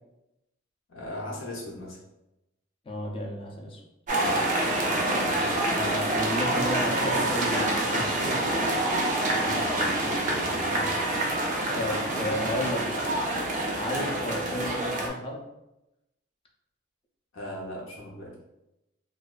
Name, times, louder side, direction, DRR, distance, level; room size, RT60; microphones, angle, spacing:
voice 1, 0.9-2.0 4.7-5.9 9.3-11.0 12.9-13.0 17.3-18.3, left 1 dB, 85° left, -3 dB, 0.7 m, -39 dB
voice 2, 2.9-3.8 5.7-8.5 11.7-13.1 13.8-15.5, equal, 25° left, 0 dB, 0.4 m, -33 dB
sound 1, 4.1-15.1, right 1 dB, 40° right, 0.4 m, -27 dB
2.5 x 2.2 x 2.3 m, 0.90 s
head